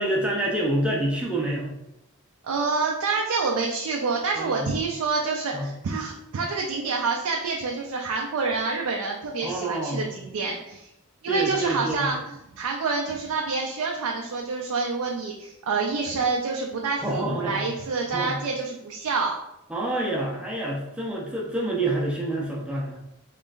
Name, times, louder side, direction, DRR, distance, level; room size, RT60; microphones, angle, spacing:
voice 1, 0.0-1.7 4.4-4.7 5.5-5.7 9.4-10.0 11.3-12.1 17.0-17.6 18.1-18.4 19.7-23.0, right 1 dB, 5° right, -3 dB, 0.6 m, -27 dB
voice 2, 2.4-10.9 11.2-19.3, right 4 dB, 75° right, 0 dB, 0.4 m, -27 dB
3.6 x 3.2 x 2.5 m, 0.88 s
head